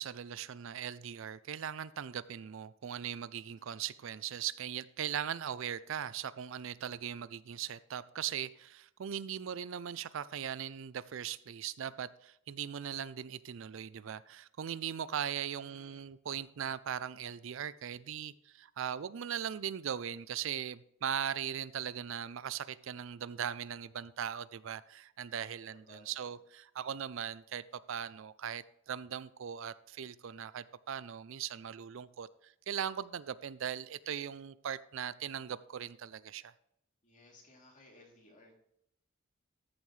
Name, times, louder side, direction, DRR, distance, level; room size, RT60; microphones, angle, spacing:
voice 1, 0.0-36.5, right 9 dB, 65° right, 0.4 m, -39 dB
voice 2, 3.5-3.8 15.2-16.1 25.7-26.3 37.0-38.6, left 2 dB, 40° left, 3.0 m, -61 dB
14.0 x 7.1 x 3.2 m
head